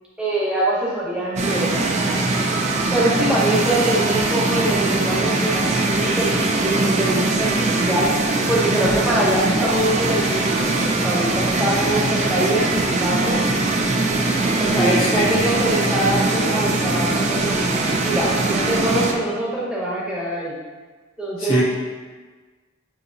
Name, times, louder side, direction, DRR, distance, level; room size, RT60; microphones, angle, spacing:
voice 1, 0.2-1.9 2.9-8.1 8.5-13.4 14.6-17.5 18.0-20.5 21.2-21.6, right 1 dB, 5° right, -7 dB, 0.8 m, -23 dB
sound 1, 1.4-2.1 3.4-4.3 4.9-5.6 6.9-7.4 7.7-7.8 8.6-9.3 10.5-11.2 12.3-13.0 14.0-14.8, right 1 dB, 45° left, 0.6 m, -34 dB
sound 2, 1.4-19.1, right 2 dB, 35° right, 0.4 m, -21 dB
voice 2, 14.8-15.4 21.4-21.6, equal, 85° left, -6 dB, 1.3 m, -21 dB
6.5 x 2.7 x 2.7 m, 1.4 s
head